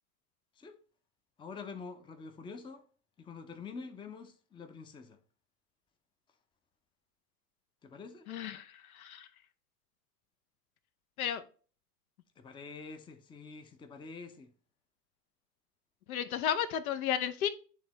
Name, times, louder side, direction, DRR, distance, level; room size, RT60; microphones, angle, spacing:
voice 1, 1.4-2.8 3.2-5.2 7.8-8.3 12.4-14.5, left 4 dB, 10° left, 0.6 m, -46 dB
voice 2, 8.3-9.3 11.2-11.4 16.1-17.5, left 9 dB, 65° left, 0.7 m, -33 dB
10.0 x 3.4 x 3.0 m
figure-of-eight pair, 75°, 47 cm